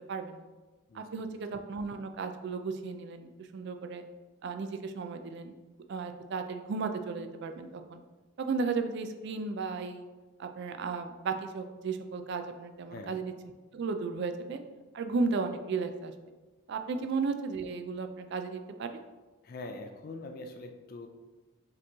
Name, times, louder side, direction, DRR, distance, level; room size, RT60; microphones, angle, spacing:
voice 1, 0.1-0.4 0.9-4.0 4.4-5.5 5.9-8.0 8.5-10.0 10.4-13.3 13.7-14.6 14.9-16.1 16.7-18.9, right 4 dB, 55° right, 7 dB, 0.3 m, -34 dB
voice 2, 12.9-13.2 16.9-17.1 19.4-21.1, left 2 dB, 45° left, 5 dB, 0.3 m, -43 dB
4.8 x 3.0 x 3.5 m, 1.2 s
head